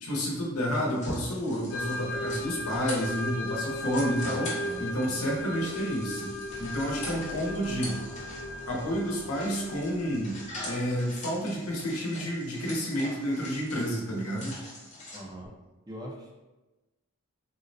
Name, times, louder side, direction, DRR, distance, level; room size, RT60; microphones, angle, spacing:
voice 1, 0.0-4.5 4.8-6.3 6.6-8.0 8.7-10.4 10.6-14.6, equal, 90° left, -2 dB, 0.8 m, -30 dB
sound 1, 0.7-15.2, left 1 dB, 30° left, 0.8 m, -44 dB
sound 2, 1.7-10.7, left 1 dB, 65° left, 0.4 m, -37 dB
voice 2, 4.4-5.7 15.1-15.5 15.9-16.3, right 1 dB, 20° right, -2 dB, 0.4 m, -43 dB
sound 3, 6.5-9.7, right 1 dB, 80° right, 0.5 m, -47 dB
3.8 x 2.1 x 2.6 m, 1.1 s
head